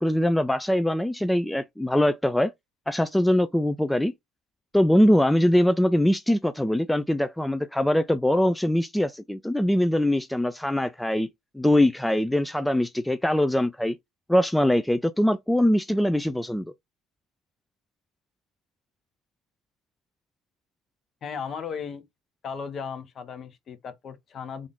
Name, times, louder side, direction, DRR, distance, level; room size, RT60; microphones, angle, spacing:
voice 1, 0.0-2.5 2.9-4.1 4.7-11.3 11.5-14.0 14.3-16.6, left 1 dB, 5° left, 0.3 m, -22 dB
voice 2, 21.2-22.1 22.4-24.7, left 6 dB, 45° left, 0.8 m, -36 dB
3.5 x 2.5 x 3.5 m
hypercardioid pair, 80°, 0 cm